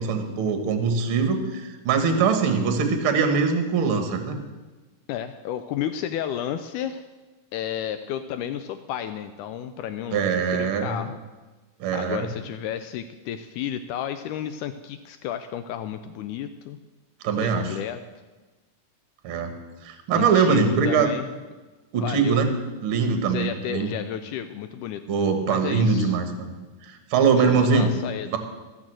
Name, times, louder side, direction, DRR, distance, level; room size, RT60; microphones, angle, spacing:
voice 1, 0.0-4.4 10.1-11.0 11.8-12.3 17.2-17.8 19.2-19.5 19.8-21.1 21.9-22.5 22.8-23.9 25.1-26.5 26.8-27.9 28.3-28.4, right 5 dB, 55° right, 6 dB, 1.5 m, -22 dB
voice 2, 5.1-7.1 7.5-11.2 11.9-16.8 17.4-18.0 20.1-21.3 22.0-22.4 23.3-25.0 25.5-26.2 27.4-28.3, left 10 dB, 85° left, 9 dB, 1.8 m, -32 dB
14.0 x 6.3 x 7.5 m, 1.2 s
omnidirectional pair, 4.1 m